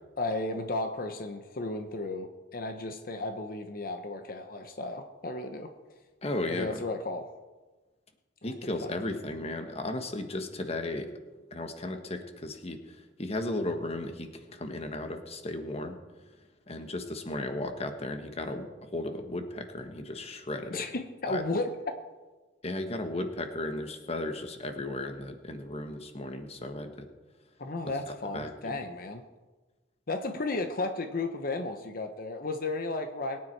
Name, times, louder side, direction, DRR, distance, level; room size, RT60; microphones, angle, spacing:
voice 1, 0.2-5.7 6.5-7.3 8.4-8.5 8.8-8.9 20.7-21.7 27.6-29.2 30.1-33.4, left 2 dB, 50° left, 6 dB, 0.9 m, -34 dB
voice 2, 6.2-6.8 8.4-11.1 11.5-12.8 13.2-16.0 16.7-20.8 21.3-21.4 22.6-27.1 28.3-28.8, left 1 dB, 35° left, 6 dB, 1.4 m, -35 dB
22.0 x 9.6 x 4.6 m, 1.3 s
head